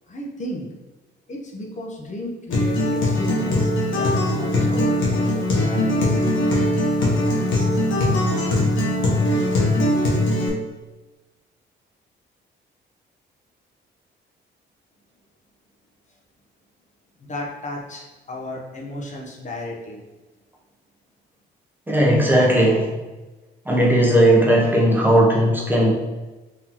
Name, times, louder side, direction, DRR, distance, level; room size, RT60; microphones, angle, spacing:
voice 1, 0.1-0.7 1.3-6.2 17.2-20.0, left 1 dB, 40° left, -1 dB, 1.0 m, -34 dB
Acoustic guitar, 2.5-10.5, left 1 dB, 80° left, 1.3 m, -20 dB
voice 2, 21.9-22.9 23.7-25.9, right 1 dB, 10° right, -3 dB, 0.8 m, -17 dB
3.8 x 3.8 x 3.0 m, 1.2 s
cardioid pair, 90°, 20 cm